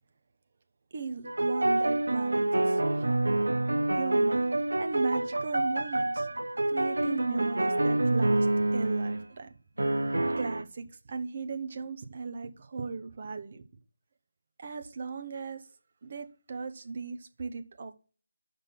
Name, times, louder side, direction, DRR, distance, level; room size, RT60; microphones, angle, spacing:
voice 1, 0.9-3.3 3.7-6.3 6.7-8.5 8.7-9.5 10.1-13.6 14.6-15.7 16.0-17.9, right 4 dB, 35° right, 0.8 m, -37 dB
sound 1, 1.3-9.3 9.8-10.6, right 2 dB, 65° right, 0.6 m, -27 dB
5.7 x 5.3 x 5.9 m
figure-of-eight pair, 160°, 0 cm